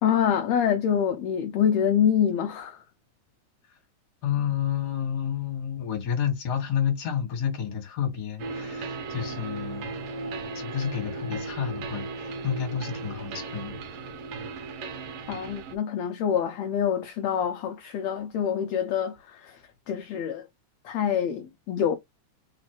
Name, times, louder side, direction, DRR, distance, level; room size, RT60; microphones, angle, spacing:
voice 1, 0.0-2.8 15.3-19.6 19.9-20.5 20.8-22.0, left 8 dB, 75° left, 1.7 m, -26 dB
voice 2, 4.2-9.9 10.5-13.8, left 8 dB, 40° left, 1.9 m, -30 dB
sound 1, 8.4-15.8, right 3 dB, 65° right, 1.8 m, -36 dB
4.2 x 4.0 x 2.9 m
omnidirectional pair, 3.5 m